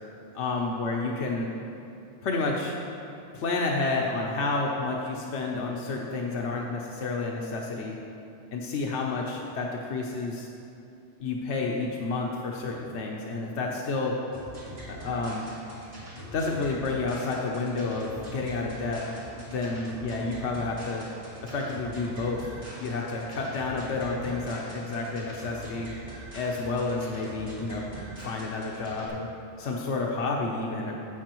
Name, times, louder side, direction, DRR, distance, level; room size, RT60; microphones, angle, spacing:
voice 1, 0.3-1.5 2.2-2.7 3.3-8.0 8.5-10.5 11.2-14.1 14.9-15.5 16.3-19.0 19.5-21.1 21.5-22.4 22.8-25.9 26.3-27.8 28.2-29.3 29.6-30.9, left 3 dB, 75° left, -1 dB, 1.0 m, -30 dB
sound 1, 14.3-29.1, equal, 80° right, 2.9 m, -43 dB
12.0 x 8.3 x 3.0 m, 2.7 s
omnidirectional pair, 1.2 m